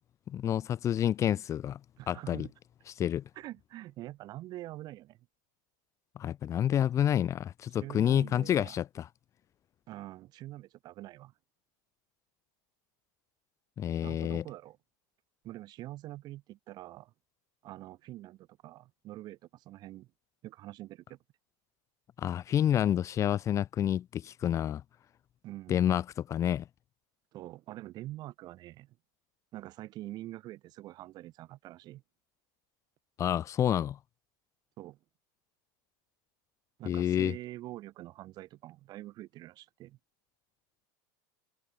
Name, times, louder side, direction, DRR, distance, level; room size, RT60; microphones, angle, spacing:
voice 1, 0.3-1.8 2.1-2.5 3.0-3.2 6.2-9.1 13.8-14.4 22.2-24.8 25.7-26.6 33.2-34.0 36.9-37.3, left 10 dB, 30° left, 2.3 m, -28 dB
voice 2, 2.0-2.5 3.3-5.2 7.7-8.8 9.9-11.3 14.0-14.8 15.4-17.1 17.6-20.1 20.4-21.2 25.4-25.8 27.3-29.0 29.5-32.0 34.8-35.0 36.8-40.0, right 16 dB, 40° right, 6.1 m, -45 dB
supercardioid pair, 145°, 11 cm